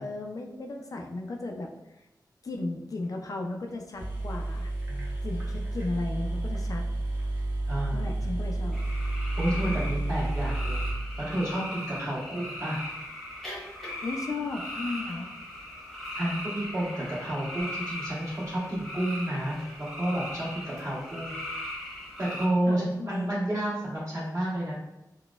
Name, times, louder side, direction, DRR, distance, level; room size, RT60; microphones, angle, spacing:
voice 1, 0.0-2.0 2.4-4.7 5.2-6.8 7.9-8.8 14.0-15.3 22.7-23.3, left 2 dB, 50° left, 2 dB, 0.3 m, -35 dB
sound 1, 3.7-3.8 4.0-11.8, right 2 dB, 25° right, 0.8 m, -31 dB
voice 2, 7.7-8.1 9.4-10.9 11.2-12.8 16.1-19.6 20.0-21.7 22.2-24.7, right 1 dB, 40° right, -8 dB, 1.4 m, -30 dB
sound 2, 8.7-22.5, left 1 dB, ahead, 1.0 m, -39 dB
3.9 x 2.1 x 2.3 m, 0.93 s
wide cardioid pair, 100°, 8 cm